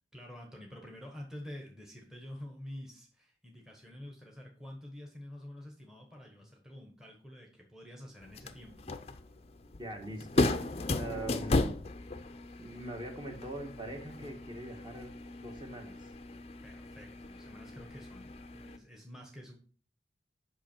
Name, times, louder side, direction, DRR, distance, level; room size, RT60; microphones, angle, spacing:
voice 1, 0.1-8.9 16.6-19.6, left 1 dB, 5° right, 2 dB, 1.1 m, -48 dB
sound 1, 8.2-18.8, left 2 dB, 35° left, 0.5 m, -36 dB
voice 2, 9.8-10.5 10.9-11.8 12.6-16.1, right 1 dB, 25° right, 2 dB, 1.5 m, -42 dB
8.3 x 5.7 x 4.4 m, 0.41 s
head